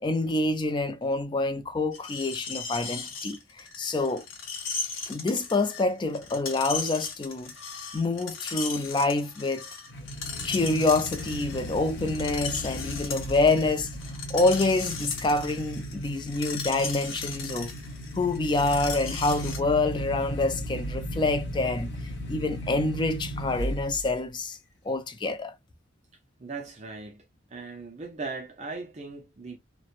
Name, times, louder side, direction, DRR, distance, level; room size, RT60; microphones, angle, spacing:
voice 1, 0.0-4.2 5.1-7.5 7.9-9.7 10.4-13.9 14.3-17.7 18.2-21.9 22.3-24.6 24.8-25.5, left 2 dB, 25° left, 0.3 m, -27 dB
Screech, 1.9-19.6, left 5 dB, 85° left, 0.8 m, -37 dB
sound 1, 9.9-24.1, equal, 60° left, 0.6 m, -36 dB
voice 2, 26.4-27.3 27.5-29.6, right 4 dB, 35° right, 0.5 m, -38 dB
2.9 x 2.1 x 2.4 m
head